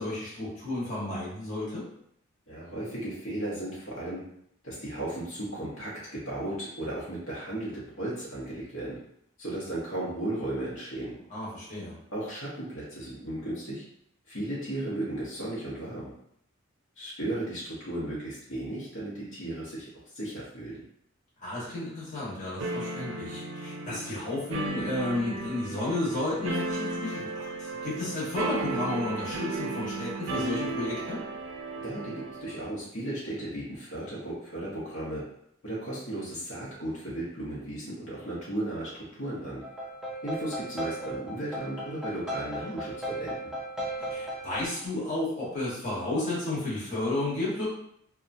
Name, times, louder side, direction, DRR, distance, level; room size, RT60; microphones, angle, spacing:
voice 1, 0.0-1.8 11.3-12.0 21.4-31.2 42.6-42.7 44.1-47.7, left 2 dB, 40° left, -8 dB, 1.1 m, -32 dB
voice 2, 2.5-4.2 4.6-9.0 9.4-11.1 12.1-13.8 14.3-16.1 17.0-19.9 20.1-20.8 31.8-35.2 35.6-39.6 40.2-43.5, right 1 dB, 65° left, -7 dB, 0.9 m, -35 dB
sound 1, 22.6-32.7, right 3 dB, 70° right, 0.5 m, -35 dB
sound 2, 39.6-44.7, equal, 5° right, 0.4 m, -36 dB
2.8 x 2.3 x 2.6 m, 0.72 s
head